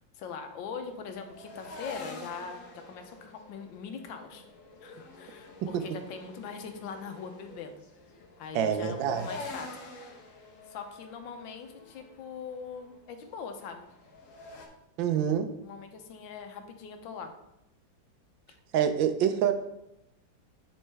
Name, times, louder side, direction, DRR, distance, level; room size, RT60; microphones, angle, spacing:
voice 1, 0.0-2.6 2.9-4.4 4.8-7.8 8.4-9.7 10.7-13.9 15.6-17.3, left 6 dB, 80° left, 6 dB, 1.5 m, -41 dB
sound 1, 0.8-14.7, left 2 dB, 50° left, 1.2 m, -47 dB
voice 2, 8.5-9.3 15.0-15.5 18.7-19.5, right 9 dB, 80° right, 9 dB, 1.4 m, -26 dB
9.5 x 4.3 x 3.4 m, 0.86 s
omnidirectional pair, 2.1 m